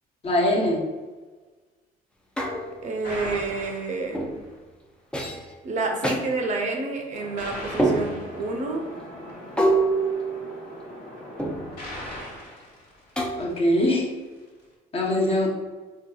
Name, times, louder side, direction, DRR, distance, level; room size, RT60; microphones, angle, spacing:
voice 1, 0.2-0.8 13.4-14.2 14.9-15.5, left 1 dB, 35° left, -2 dB, 0.8 m, -22 dB
sound 1, 2.4-3.0 4.1-4.5 5.1-5.5 6.0-6.2 7.8-8.4 9.6-10.9 11.4-11.9 13.2-13.7, right 2 dB, 5° left, 0.4 m, -26 dB
voice 2, 2.8-4.3 5.6-8.8, right 3 dB, 45° right, 2 dB, 0.6 m, -29 dB
sound 2, 3.0-4.5 7.1-13.7, left 1 dB, 65° left, 1.1 m, -39 dB
3.5 x 2.7 x 2.3 m, 1.3 s
cardioid pair, 110°, 17 cm